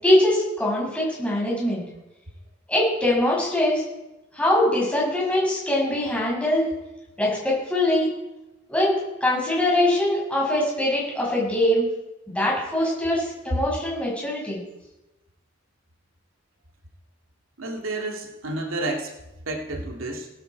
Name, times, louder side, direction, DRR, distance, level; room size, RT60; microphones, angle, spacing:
voice 1, 0.0-1.8 2.7-3.8 4.3-6.7 7.2-8.1 8.7-8.9 9.2-11.9 12.3-14.6, left 1 dB, 5° left, -4 dB, 6.7 m, -22 dB
voice 2, 17.6-19.1 19.5-20.3, right 2 dB, 85° right, 1 dB, 2.6 m, -30 dB
18.0 x 14.0 x 4.7 m, 0.99 s
head